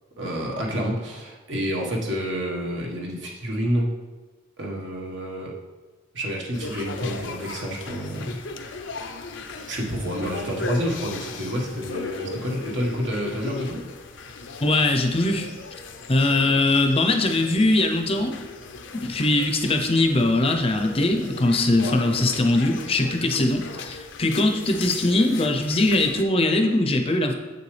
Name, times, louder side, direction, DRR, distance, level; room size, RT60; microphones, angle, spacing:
voice 1, 0.2-3.9 4.6-5.5 6.1-8.4 9.7-13.8, equal, 70° right, -2 dB, 1.4 m, -28 dB
sound 1, 6.5-26.2, left 3 dB, 75° left, 0.6 m, -37 dB
voice 2, 14.6-15.5 16.1-18.4 18.9-27.3, left 2 dB, 30° left, 4 dB, 0.6 m, -21 dB
7.7 x 6.8 x 3.3 m, 1.2 s
head